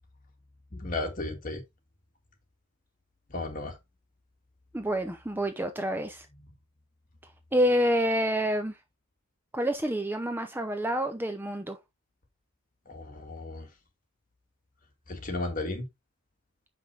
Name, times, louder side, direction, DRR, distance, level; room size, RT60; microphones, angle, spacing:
voice 1, 0.8-1.6 3.3-3.7 12.9-13.7 15.1-15.9, left 2 dB, 35° left, 2.0 m, -34 dB
voice 2, 4.7-6.3 7.5-8.7 9.5-11.8, equal, 10° right, 0.6 m, -28 dB
6.6 x 5.7 x 3.2 m
head